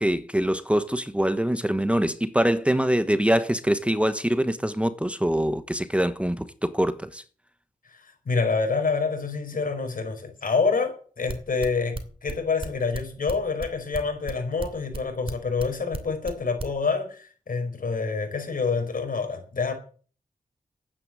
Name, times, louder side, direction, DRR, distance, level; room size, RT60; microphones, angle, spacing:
voice 1, 0.0-7.2, right 1 dB, 10° right, 1.1 m, -24 dB
voice 2, 7.9-19.7, left 4 dB, 70° left, 5.2 m, -27 dB
sound 1, 11.3-16.7, right 2 dB, 40° right, 2.9 m, -33 dB
12.0 x 9.6 x 7.6 m
cardioid pair, 60°, 15 cm